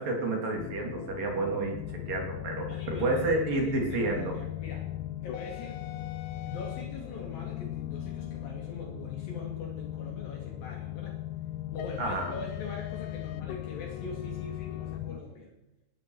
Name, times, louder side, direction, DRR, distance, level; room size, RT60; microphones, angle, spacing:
voice 1, 0.0-1.8 2.1-4.3 12.0-12.4, right 2 dB, 60° right, 1 dB, 4.5 m, -30 dB
sound 1, 0.5-15.2, left 14 dB, 80° left, 2.5 m, -38 dB
voice 2, 2.7-4.9 5.2-6.0 6.4-11.2 11.7-15.5, left 3 dB, 65° left, -1 dB, 4.0 m, -43 dB
19.5 x 12.0 x 4.8 m, 0.91 s
omnidirectional pair, 4.5 m